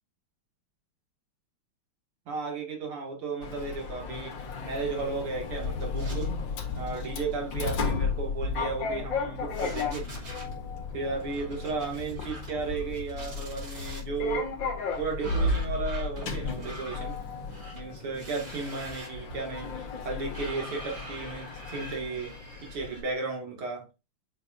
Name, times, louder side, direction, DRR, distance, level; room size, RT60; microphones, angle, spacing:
voice 1, 2.3-6.3 6.7-10.1 10.9-14.5 15.0-17.2 17.7-22.3 22.6-23.8, right 4 dB, 80° right, 3.3 m, -34 dB
Sliding door, 3.4-23.0, left 4 dB, 60° left, 1.9 m, -34 dB
sound 1, 6.0-6.6 6.8-7.1 8.3-9.2 9.5-10.5 11.2-12.6 12.9-14.0 14.9-23.0, right 1 dB, 50° right, 4.2 m, -45 dB
9.1 x 5.7 x 2.7 m
omnidirectional pair, 2.4 m